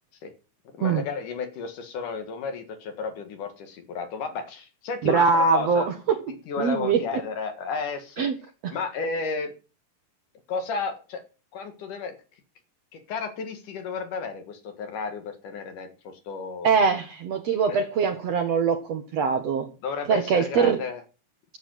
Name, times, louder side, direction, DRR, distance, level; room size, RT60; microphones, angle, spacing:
voice 1, 0.8-5.9 6.5-8.3 8.7-9.5 10.5-11.2 11.5-12.2 12.9-16.8 17.7-17.8 19.8-21.0, left 5 dB, 65° left, 3.2 m, -32 dB
voice 2, 5.0-6.2 6.6-7.0 8.2-8.3 8.6-8.8 16.6-19.7 20.1-20.8, right 5 dB, 60° right, 1.9 m, -22 dB
11.5 x 8.2 x 7.7 m
omnidirectional pair, 4.2 m